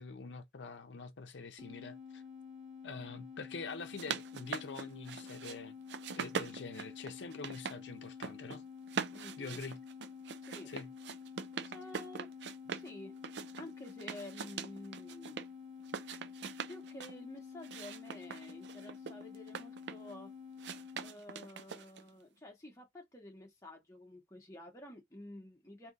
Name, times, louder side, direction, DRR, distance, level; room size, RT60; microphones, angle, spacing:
voice 1, 0.0-2.2 2.8-5.8 6.2-8.6 9.4-9.8 10.7-10.9, left 4 dB, 80° left, 0.6 m, -45 dB
sound 1, 1.6-21.2, left 6 dB, 40° right, 1.3 m, -50 dB
sound 2, 3.7-5.6 5.9-7.8 8.1-8.6 8.9-12.9 13.2-15.5 15.8-17.1 17.6-20.1 20.6-22.1, right 6 dB, 65° right, 0.5 m, -42 dB
voice 2, 9.1-9.6 10.4-10.7 11.7-12.3 12.7-13.1 13.5-15.4 16.7-20.3 21.0-25.9, left 1 dB, 15° left, 1.0 m, -50 dB
2.7 x 2.5 x 3.8 m
head